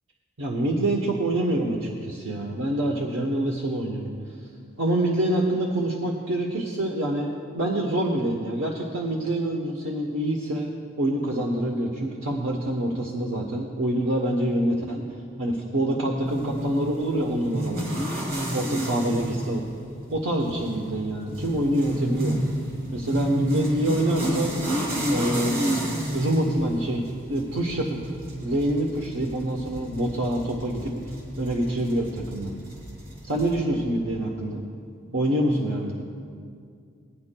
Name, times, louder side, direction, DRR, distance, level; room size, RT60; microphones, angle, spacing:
voice 1, 0.4-4.1 4.8-7.3 7.5-10.7 11.0-15.0 15.4-17.9 18.5-19.6 20.1-22.4 22.9-24.5 25.1-25.8 26.1-27.0 27.3-28.0 28.4-30.9 31.4-32.5 33.2-34.6 35.1-36.0, right 1 dB, 75° right, 0 dB, 0.9 m, -26 dB
sound 1, 16.2-33.6, right 1 dB, 50° right, 3.0 m, -31 dB
20.0 x 9.8 x 2.2 m, 2.3 s
head